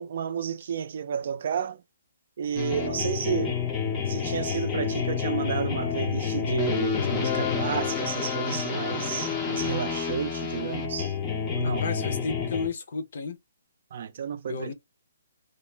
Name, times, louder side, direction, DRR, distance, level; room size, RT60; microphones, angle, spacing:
voice 1, 0.0-1.8 2.4-3.6 4.0-11.1 11.5-11.8 13.9-14.7, right 8 dB, 45° right, 0.3 m, -31 dB
sound 1, 2.6-12.7, left 7 dB, 15° left, 0.5 m, -29 dB
voice 2, 11.6-13.4 14.5-14.7, left 4 dB, 55° left, 0.7 m, -33 dB
2.2 x 2.0 x 3.2 m
hypercardioid pair, 170°, 0 cm